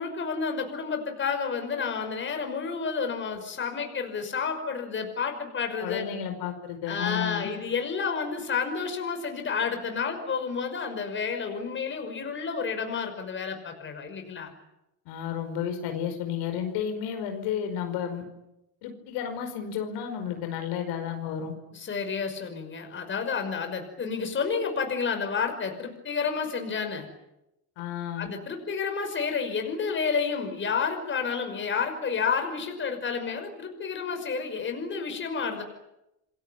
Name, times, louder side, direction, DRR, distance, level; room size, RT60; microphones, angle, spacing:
voice 1, 0.0-6.1 6.9-14.5 21.7-27.1 28.2-35.6, left 5 dB, 30° left, 5 dB, 5.7 m, -30 dB
voice 2, 5.8-7.5 15.0-18.2 18.8-21.5 27.8-28.3, left 8 dB, 80° left, 6 dB, 5.1 m, -32 dB
28.0 x 22.0 x 9.5 m, 0.90 s
cardioid pair, 135°, 40 cm